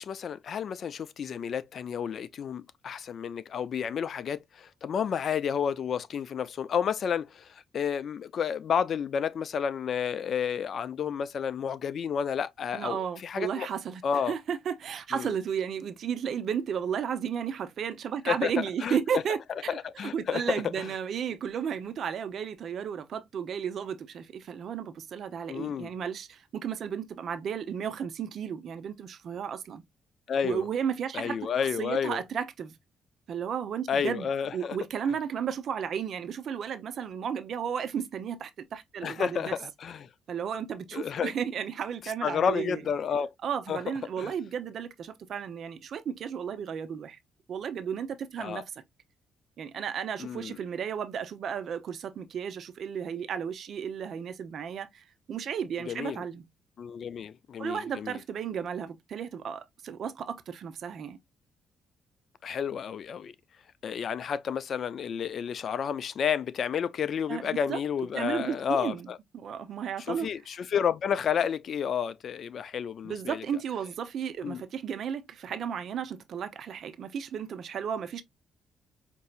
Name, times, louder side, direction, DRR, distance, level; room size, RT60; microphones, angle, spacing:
voice 1, 0.0-13.7 14.0-14.3 15.1-15.3 18.3-19.2 19.7-20.9 25.5-25.9 30.3-30.6 31.1-32.2 33.9-34.8 39.0-40.1 40.9-41.3 42.2-43.3 43.7-44.3 48.4-48.6 50.2-50.6 55.8-56.2 56.8-58.2 62.4-63.3 63.8-69.2 70.1-73.4 74.4-74.6, left 7 dB, 60° left, 0.4 m, -31 dB
voice 2, 12.7-14.0 14.3-19.4 20.0-29.8 30.4-31.5 31.8-32.7 33.3-39.5 40.3-42.8 43.4-47.2 47.5-48.6 49.6-56.4 57.6-61.2 67.3-67.8 68.1-69.1 69.3-70.3 73.0-78.2, right 7 dB, 60° right, 0.7 m, -33 dB
5.3 x 2.7 x 2.4 m
cardioid pair, 90°, 0 cm